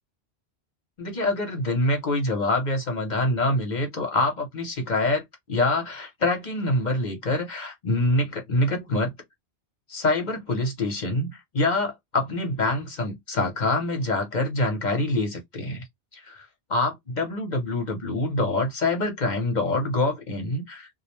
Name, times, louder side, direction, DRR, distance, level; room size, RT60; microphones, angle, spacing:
voice 1, 1.0-9.1 9.9-15.8 16.1-20.9, left 2 dB, 45° left, 0.8 m, -25 dB
2.3 x 2.1 x 3.0 m
omnidirectional pair, 1.1 m